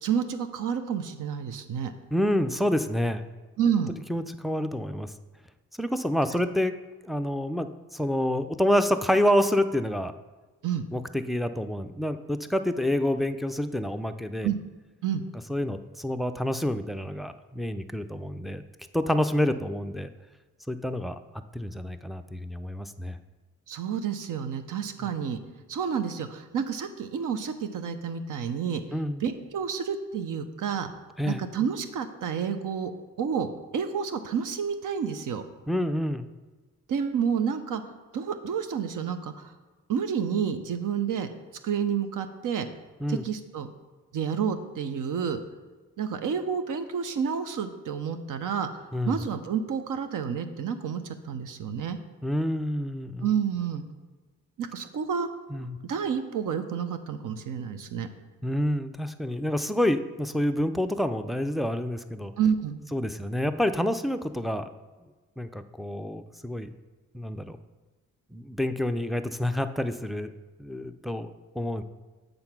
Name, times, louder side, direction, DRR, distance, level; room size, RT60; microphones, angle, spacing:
voice 1, 0.0-1.9 3.6-3.9 10.6-10.8 14.4-14.6 15.0-15.2 23.7-25.4 25.7-28.8 29.2-30.9 31.3-32.9 33.2-35.4 36.9-37.8 38.1-39.5 39.9-41.3 41.6-42.7 43.1-43.7 44.1-45.4 46.0-48.7 49.1-52.0 53.2-53.8 54.6-55.3 55.9-58.1 62.4-62.8, right 7 dB, 75° right, 9 dB, 0.7 m, -29 dB
voice 2, 2.1-3.3 4.1-5.1 5.8-6.7 7.0-10.1 10.9-14.5 15.5-18.6 18.9-20.1 20.7-21.2 21.5-23.2 28.9-29.2 31.2-31.4 35.7-36.3 43.0-43.2 48.9-49.2 52.2-53.3 55.5-55.8 58.4-62.3 62.9-64.7 65.4-66.7 67.1-67.6 68.3-70.3 70.6-71.8, left 1 dB, ahead, 8 dB, 0.3 m, -28 dB
7.8 x 3.9 x 5.9 m, 1.3 s
cardioid pair, 90°, 32 cm